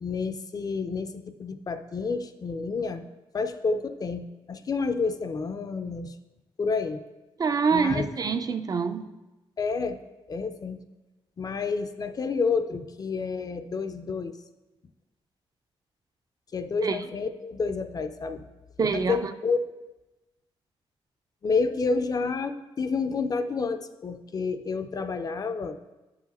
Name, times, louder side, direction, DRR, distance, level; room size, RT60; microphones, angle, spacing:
voice 1, 0.0-3.0 3.3-6.2 6.6-7.0 7.7-8.1 9.6-10.0 10.3-10.8 11.4-14.4 16.5-18.5 18.9-19.7 21.4-25.8, left 4 dB, 40° left, 9 dB, 0.4 m, -29 dB
voice 2, 7.4-9.0 16.8-17.0 18.8-19.3, right 5 dB, 40° right, 10 dB, 0.4 m, -26 dB
7.8 x 4.8 x 4.1 m, 1.0 s
wide cardioid pair, 120°, 10 cm